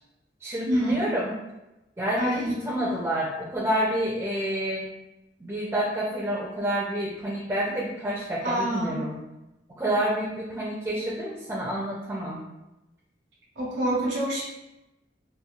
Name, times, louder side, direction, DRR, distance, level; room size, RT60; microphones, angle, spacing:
voice 1, 0.4-1.3 2.0-4.8 5.4-9.2 9.8-12.4, right 1 dB, 15° right, -5 dB, 0.3 m, -28 dB
voice 2, 2.2-2.5 8.4-9.0 13.6-14.4, right 1 dB, 85° right, -6 dB, 0.9 m, -26 dB
2.9 x 2.2 x 2.3 m, 0.96 s
head